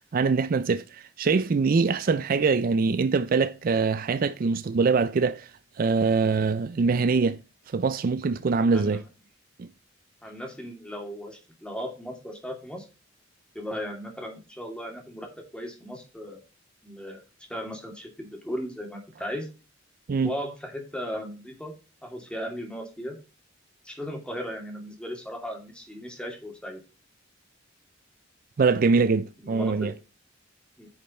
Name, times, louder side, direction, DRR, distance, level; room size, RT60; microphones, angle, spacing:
voice 1, 0.1-5.5 5.8-7.4 7.7-9.0 9.6-9.7 20.1-20.3 28.6-29.9, right 4 dB, 45° right, 0.4 m, -23 dB
voice 2, 8.7-9.1 10.2-12.9 13.5-15.3 15.5-16.4 16.8-17.2 17.5-19.5 20.2-21.7 22.0-23.2 23.8-26.8 29.4-29.9 30.8-30.9, equal, 5° left, 2.4 m, -36 dB
9.9 x 5.3 x 4.3 m
head